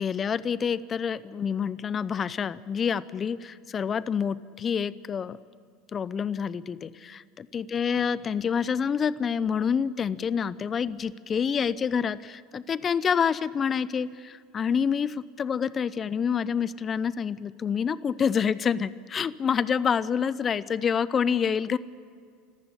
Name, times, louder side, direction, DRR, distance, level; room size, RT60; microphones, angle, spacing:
voice 1, 0.0-5.4 5.9-21.8, left 7 dB, 35° left, 19 dB, 0.7 m, -27 dB
25.5 x 15.0 x 9.9 m, 2.1 s
hypercardioid pair, 80°, 0 cm